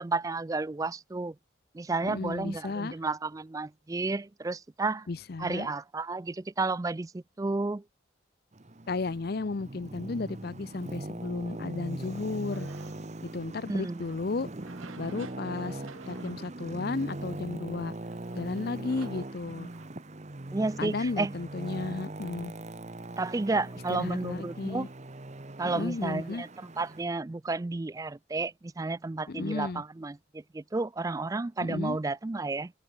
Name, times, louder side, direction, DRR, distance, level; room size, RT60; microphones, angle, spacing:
voice 1, 0.0-1.3 1.7-5.1 5.4-7.8 13.7-14.0 20.5-21.3 23.2-24.9 25.6-26.5 26.8-32.7, right 3 dB, 15° right, 0.3 m, -32 dB
voice 2, 2.0-2.9 5.1-5.7 8.9-12.7 13.2-14.5 15.0-17.9 18.4-19.7 20.8-22.5 24.0-24.9 25.6-26.4 29.3-29.8 31.6-32.0, left 3 dB, 50° left, 0.5 m, -34 dB
Traffic noise roadway noise, 8.5-27.0, right 1 dB, 35° right, 1.0 m, -41 dB
sound 1, 12.5-19.9, right 4 dB, 85° right, 2.2 m, -54 dB
head